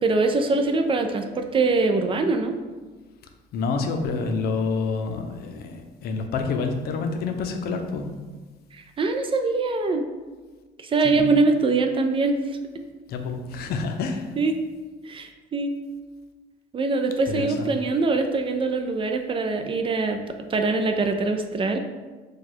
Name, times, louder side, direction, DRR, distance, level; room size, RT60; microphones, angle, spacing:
voice 1, 0.0-2.6 9.0-10.0 10.8-12.4 14.4-14.5 15.1-15.7 16.7-20.2 20.5-21.8, right 3 dB, 30° right, 6 dB, 0.4 m, -23 dB
voice 2, 3.5-8.1 11.2-11.3 13.1-14.4 17.3-17.8, left 4 dB, 70° left, 5 dB, 0.6 m, -28 dB
4.7 x 2.3 x 4.3 m, 1.3 s
cardioid pair, 110°, 17 cm